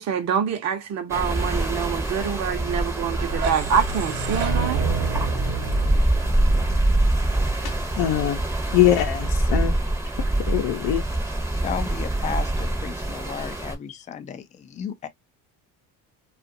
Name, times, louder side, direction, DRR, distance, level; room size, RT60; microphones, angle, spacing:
voice 1, 0.0-4.8, right 7 dB, 50° right, 0.8 m, -26 dB
sound 1, 1.1-13.7, right 1 dB, 10° right, 0.7 m, -25 dB
sound 2, 3.0-7.9, right 6 dB, 70° right, 1.0 m, -30 dB
voice 2, 8.0-9.7 10.5-11.0, left 12 dB, 80° left, 0.7 m, -22 dB
voice 3, 11.6-15.1, left 7 dB, 20° left, 0.3 m, -34 dB
2.5 x 2.4 x 2.5 m
cardioid pair, 135°, 36 cm